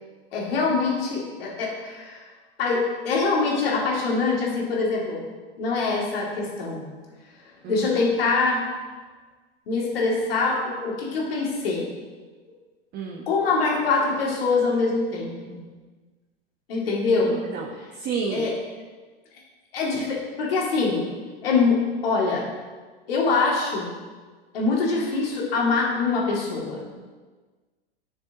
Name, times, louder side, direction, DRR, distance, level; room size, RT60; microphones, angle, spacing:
voice 1, 0.3-2.2 2.6-5.2 5.6-6.8 7.7-8.7 9.7-11.9 13.3-15.6 16.7-17.4 18.3-18.6 19.7-21.1 21.4-22.5 23.1-23.9 24.5-26.8, left 4 dB, 70° left, -3 dB, 2.6 m, -24 dB
voice 2, 12.9-13.2 17.3-17.7 18.0-18.5, right 5 dB, 35° right, -2 dB, 1.1 m, -30 dB
11.0 x 6.6 x 3.0 m, 1.4 s
hypercardioid pair, 100°, 30 cm